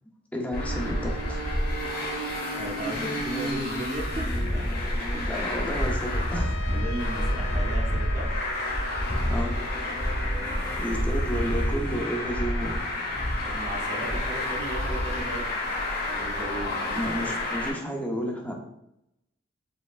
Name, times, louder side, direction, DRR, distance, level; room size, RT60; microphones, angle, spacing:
voice 1, 0.3-1.4 5.2-6.5 9.3-9.6 10.8-12.8 16.9-18.5, equal, 10° left, 1 dB, 0.6 m, -31 dB
Traffic noise roadway noise, 0.5-17.7, left 1 dB, 50° left, 1.2 m, -29 dB
voice 2, 2.6-4.6 5.0-5.4 6.3-8.3 10.2-10.9 13.4-15.5 16.0-17.4, right 2 dB, 40° right, -1 dB, 0.8 m, -36 dB
Trumpet, 6.3-11.1, left 2 dB, 90° left, 0.3 m, -42 dB
5.3 x 3.4 x 2.4 m, 0.84 s
head